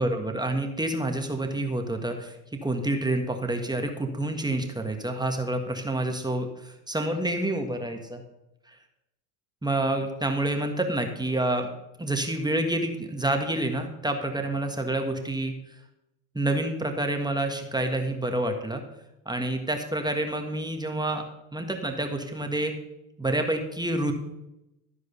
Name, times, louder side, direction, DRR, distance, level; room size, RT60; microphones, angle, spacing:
voice 1, 0.0-8.2 8.7-8.8 9.6-11.7 12.0-15.8 16.3-18.8 19.2-21.2 21.5-22.7 23.2-24.1, right 1 dB, 10° right, 4 dB, 1.5 m, -28 dB
13.5 x 4.8 x 6.9 m, 0.90 s
supercardioid pair, 85°, 46 cm